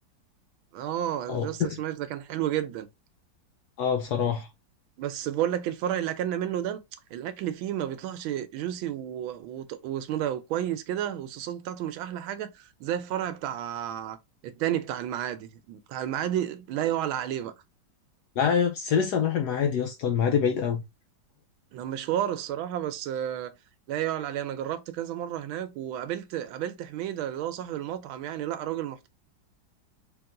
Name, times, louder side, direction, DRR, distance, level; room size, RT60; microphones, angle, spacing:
voice 1, 0.7-2.9 5.0-6.8 7.1-14.2 14.4-17.5 21.7-23.6 23.9-29.1, right 11 dB, 90° right, 1.4 m, -31 dB
voice 2, 1.3-1.7 3.8-4.5 18.4-20.8, left 7 dB, 75° left, 0.9 m, -25 dB
3.4 x 3.0 x 3.7 m
omnidirectional pair, 2.1 m